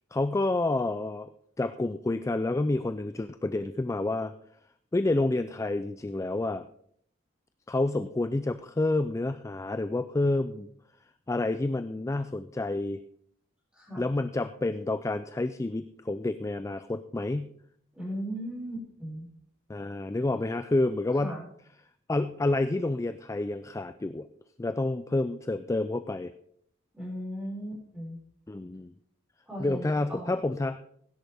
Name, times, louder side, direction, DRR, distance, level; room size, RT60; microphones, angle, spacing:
voice 1, 0.1-1.3 1.6-4.3 4.9-6.7 7.7-10.7 11.3-13.0 14.0-17.6 19.7-21.4 22.1-24.3 24.6-26.3 28.5-28.9 29.6-30.8, left 2 dB, 15° left, 11 dB, 0.3 m, -29 dB
voice 2, 17.9-19.3 21.2-21.4 26.9-28.2 29.4-30.4, equal, 5° right, -4 dB, 5.2 m, -37 dB
16.5 x 10.5 x 3.5 m, 0.66 s
head